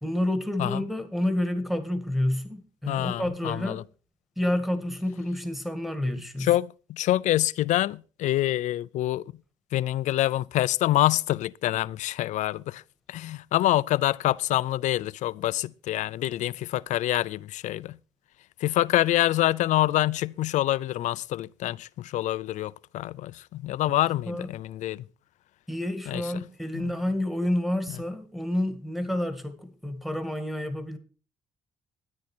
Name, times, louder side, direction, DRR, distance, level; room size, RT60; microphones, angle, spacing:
voice 1, 0.0-3.8 4.4-6.5 23.8-23.9 24.2-24.5 25.7-31.0, left 1 dB, ahead, 1.8 m, -29 dB
voice 2, 2.9-3.8 6.4-9.2 9.7-12.8 13.1-18.0 18.6-25.0 26.1-26.2 26.7-26.9, left 14 dB, 75° left, 0.5 m, -26 dB
13.0 x 9.7 x 4.4 m
cardioid pair, 115°, 12 cm